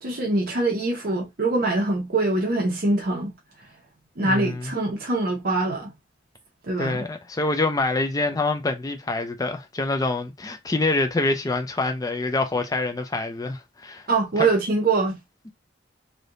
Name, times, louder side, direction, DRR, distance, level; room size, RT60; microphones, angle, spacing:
voice 1, 0.0-3.3 4.2-5.9 6.6-7.1 14.1-15.2, right 2 dB, 50° right, 0.8 m, -23 dB
voice 2, 4.2-4.7 6.8-14.1 14.4-14.5, left 2 dB, 20° left, 0.4 m, -26 dB
3.3 x 2.7 x 2.6 m
head